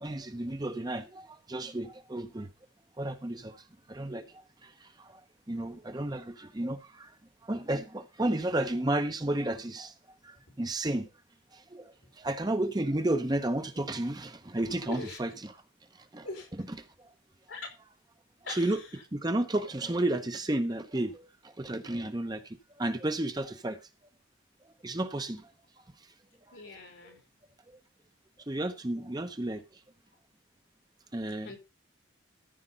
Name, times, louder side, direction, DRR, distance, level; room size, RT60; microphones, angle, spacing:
voice 1, 0.0-2.5 3.0-3.5 3.9-4.2 4.6-4.7 5.1-5.2 5.5-7.1 7.5-9.9 10.2-11.1 11.7-15.6 16.1-16.7 18.5-18.8 19.1-21.2 21.6-22.4 22.8-23.8 24.8-25.4 28.5-29.6 31.1-31.5, right 1 dB, 20° right, 0.7 m, -32 dB
voice 2, 14.9-15.2 16.2-16.5 17.5-17.7 18.4-18.8 26.5-27.2 31.4-31.6, left 3 dB, 65° left, 3.4 m, -41 dB
14.0 x 5.1 x 5.2 m
head